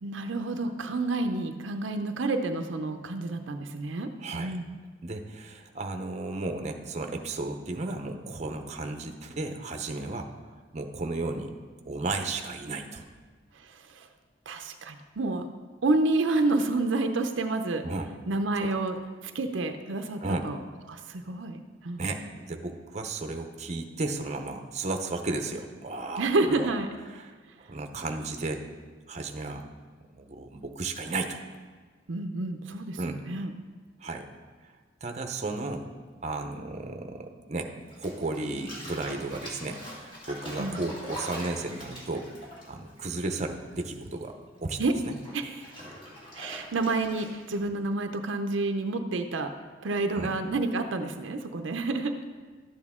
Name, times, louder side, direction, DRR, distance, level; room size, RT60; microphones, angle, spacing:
voice 1, 0.0-4.7 13.6-14.1 14.5-15.4 15.8-17.8 18.3-19.0 19.2-20.6 20.9-21.6 21.8-22.0 26.2-26.9 32.1-33.5 40.6-40.8 44.8-44.9 45.3-45.7 46.3-49.5 49.8-52.1, right 2 dB, 75° right, 6 dB, 0.6 m, -29 dB
voice 2, 4.2-4.5 5.0-10.3 10.7-11.5 11.8-13.0 17.8-18.1 18.6-18.7 20.2-20.5 22.0-26.7 27.2-27.3 27.6-28.6 29.1-29.6 30.2-31.4 33.0-33.2 34.0-34.3 35.0-35.9 36.2-37.7 38.0-42.3 42.7-44.4 44.6-44.8 45.0-45.2 50.1-50.3, right 2 dB, 35° right, 5 dB, 0.7 m, -34 dB
Bathtub (filling or washing), 37.9-43.7 44.0-47.6, equal, 25° left, 2.3 m, -43 dB
12.5 x 8.2 x 3.6 m, 1.5 s
head